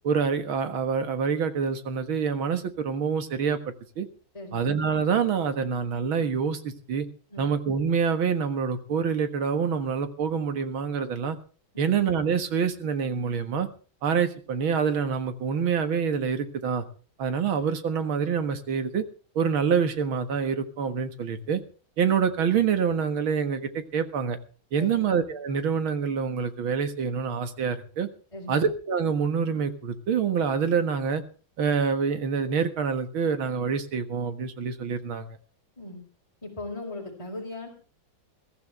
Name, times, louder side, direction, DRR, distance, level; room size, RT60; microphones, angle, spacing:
voice 1, 0.0-3.6 4.0-4.1 4.5-7.1 7.4-11.4 11.8-13.7 14.0-16.8 17.2-19.0 19.4-21.6 22.0-24.4 24.7-28.1 28.5-31.2 31.6-35.3, right 6 dB, 80° right, 9 dB, 2.4 m, -26 dB
voice 2, 4.3-4.7 7.3-7.5 11.7-11.9 24.8-25.1 28.3-28.6 35.8-36.0 36.4-37.7, left 2 dB, 15° left, -1 dB, 4.5 m, -38 dB
22.0 x 14.0 x 3.4 m, 0.38 s
omnidirectional pair, 2.2 m